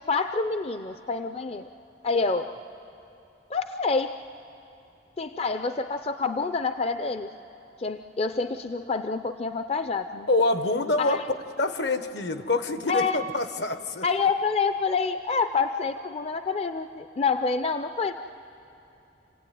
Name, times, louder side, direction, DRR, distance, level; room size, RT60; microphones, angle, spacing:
voice 1, 0.0-1.7 2.0-2.5 3.5-4.2 5.2-7.3 7.8-10.3 11.0-11.2 12.9-13.2 14.0-18.1, left 4 dB, 35° left, 9 dB, 0.5 m, -27 dB
voice 2, 10.3-11.2 11.6-14.0, left 2 dB, 70° left, 10 dB, 1.1 m, -26 dB
28.5 x 16.5 x 9.4 m, 2.8 s
head